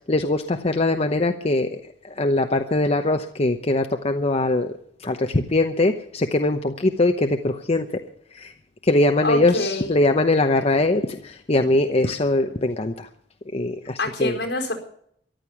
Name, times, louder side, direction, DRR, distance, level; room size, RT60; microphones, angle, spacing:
voice 1, 0.1-1.8 2.2-4.7 5.0-7.9 8.3-8.5 8.8-13.1 13.5-14.4, left 2 dB, 35° left, 6 dB, 0.9 m, -21 dB
voice 2, 9.2-10.0 14.0-14.7, left 2 dB, 75° left, 2 dB, 4.5 m, -26 dB
14.0 x 12.0 x 7.2 m, 0.66 s
head